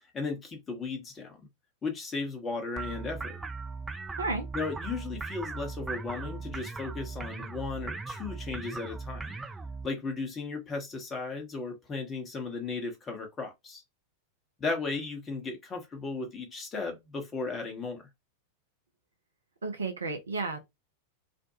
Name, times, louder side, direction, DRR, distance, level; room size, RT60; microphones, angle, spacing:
voice 1, 0.1-1.4 1.8-3.4 4.5-9.3 9.8-13.8 14.6-18.1, left 4 dB, 20° left, 0.9 m, -35 dB
sound 1, 2.8-9.9, right 4 dB, 10° right, 0.4 m, -38 dB
voice 2, 19.6-20.6, right 3 dB, 75° right, 0.5 m, -32 dB
2.5 x 2.2 x 2.7 m
figure-of-eight pair, 90°, 0 cm